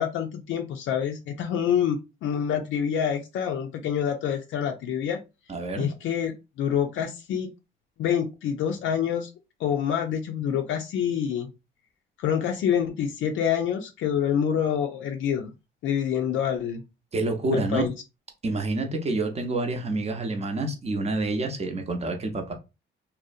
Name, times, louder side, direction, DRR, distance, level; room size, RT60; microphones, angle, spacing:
voice 1, 0.0-5.2 5.8-6.3 6.6-7.5 8.0-9.3 9.6-11.5 12.2-15.5 15.8-16.8 17.5-17.9, left 8 dB, 75° left, 0.4 m, -26 dB
voice 2, 5.5-5.9 17.1-17.9 18.4-22.5, right 2 dB, 30° right, 0.6 m, -28 dB
2.6 x 2.0 x 2.4 m
cardioid pair, 90°, 20 cm